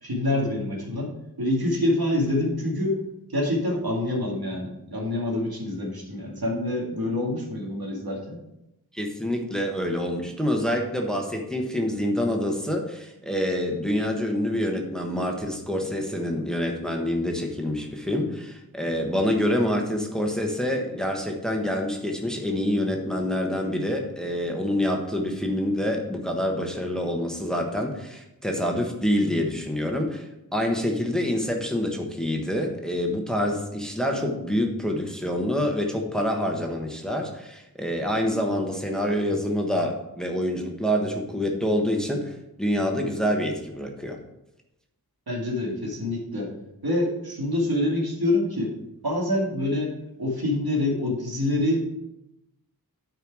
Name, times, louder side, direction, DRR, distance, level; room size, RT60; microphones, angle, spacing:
voice 1, 0.0-3.0 3.3-8.4 45.3-46.5 46.8-48.7 49.0-49.9 50.2-52.0, left 1 dB, 75° right, -2 dB, 2.2 m, -26 dB
voice 2, 8.9-44.2, left 1 dB, ahead, 2 dB, 1.2 m, -26 dB
9.1 x 4.6 x 4.8 m, 0.88 s
wide cardioid pair, 55°, 37 cm